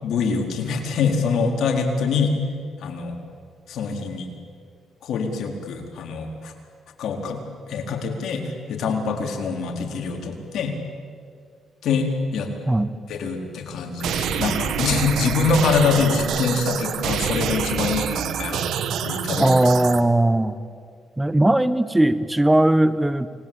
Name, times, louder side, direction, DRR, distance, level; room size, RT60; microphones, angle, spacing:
voice 1, 0.0-2.3 2.8-3.2 3.7-4.3 5.0-6.5 7.0-7.4 7.7-10.7 11.8-12.5 13.1-18.7 19.0-19.5, left 5 dB, 70° left, 2 dB, 4.2 m, -24 dB
sound 1, 14.0-20.0, right 8 dB, 75° right, 1.5 m, -26 dB
voice 2, 19.4-20.6 21.2-23.3, right 1 dB, 10° right, 13 dB, 1.0 m, -18 dB
29.0 x 20.5 x 8.8 m, 2.1 s
cardioid pair, 90°, 0 cm